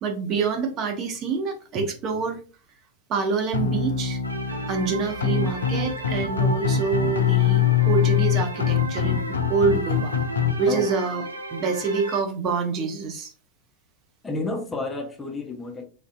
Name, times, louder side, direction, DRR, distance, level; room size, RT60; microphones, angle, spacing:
voice 1, 0.0-2.4 3.1-4.2 4.7-10.1 10.6-11.2 11.5-13.3, right 5 dB, 35° right, 4 dB, 0.6 m, -26 dB
sound 1, 3.5-10.5, left 8 dB, 70° left, 0.4 m, -23 dB
sound 2, 4.2-12.2, right 1 dB, 85° right, 0.4 m, -34 dB
voice 2, 14.2-15.8, left 3 dB, 15° left, 2 dB, 0.6 m, -30 dB
3.2 x 2.6 x 2.4 m, 0.37 s
figure-of-eight pair, 90°, 0 cm